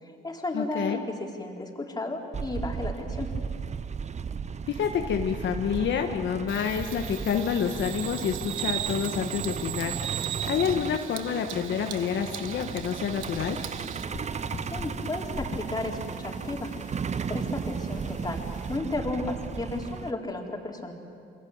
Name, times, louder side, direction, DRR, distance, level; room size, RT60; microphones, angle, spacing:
voice 1, 0.0-3.3 14.7-16.7 17.3-18.4 18.7-20.9, left 2 dB, 20° left, 0 dB, 4.4 m, -33 dB
voice 2, 0.5-1.0 4.7-13.6, left 7 dB, 70° left, 4 dB, 1.5 m, -28 dB
Truck, 2.3-20.1, right 6 dB, 35° right, 0.7 m, -35 dB
Bird vocalization bird call bird song, 6.5-14.0, right 12 dB, 85° right, 1.2 m, -37 dB
sound 1, 13.2-18.8, left 4 dB, 35° left, 2.3 m, -44 dB
28.5 x 22.5 x 8.9 m, 2.3 s
cardioid pair, 90°, 20 cm